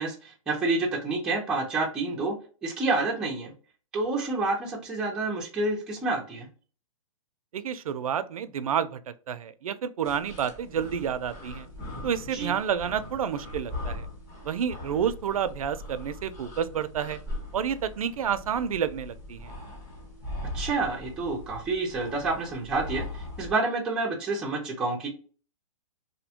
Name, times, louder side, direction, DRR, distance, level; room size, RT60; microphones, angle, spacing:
voice 1, 0.0-2.4 2.6-3.5 3.9-6.5 12.3-12.5 20.4-25.1, right 3 dB, 5° right, 0.4 m, -28 dB
voice 2, 7.5-9.0 9.3-11.7 12.0-14.1 14.4-17.2 17.5-19.5, right 8 dB, 90° right, 0.4 m, -29 dB
sound 1, 10.0-23.5, left 1 dB, 20° left, 0.7 m, -40 dB
2.7 x 2.1 x 2.7 m
hypercardioid pair, 155°, 18 cm